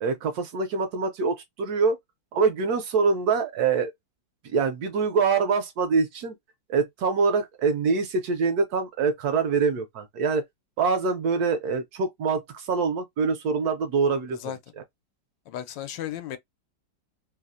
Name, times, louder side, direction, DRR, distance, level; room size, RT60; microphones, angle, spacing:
voice 1, 0.0-2.0 2.3-3.9 4.5-6.4 6.7-10.4 10.8-14.4, right 5 dB, 70° right, 1.0 m, -24 dB
voice 2, 15.5-16.4, left 11 dB, 90° left, 1.3 m, -34 dB
3.1 x 2.0 x 2.4 m
omnidirectional pair, 1.9 m